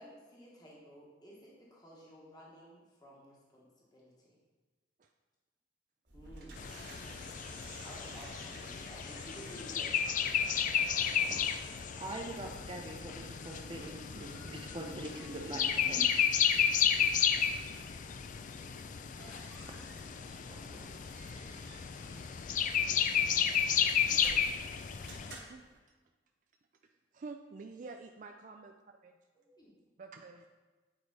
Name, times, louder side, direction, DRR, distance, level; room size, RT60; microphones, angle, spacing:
voice 1, 0.0-4.4 6.1-6.6 7.8-10.0 29.3-29.8, equal, 20° left, -4 dB, 1.3 m, -53 dB
sound 1, 6.1-25.8, right 2 dB, 60° right, 1.6 m, -55 dB
sound 2, 6.6-25.4, left 8 dB, 45° left, 0.3 m, -32 dB
voice 2, 12.0-16.1 17.4-17.5 20.4-21.0, right 1 dB, 25° right, 2 dB, 0.7 m, -43 dB
voice 3, 27.1-28.7 29.0-29.2 30.0-30.4, right 4 dB, 45° right, 4 dB, 0.3 m, -47 dB
8.9 x 4.7 x 4.0 m, 1.2 s
head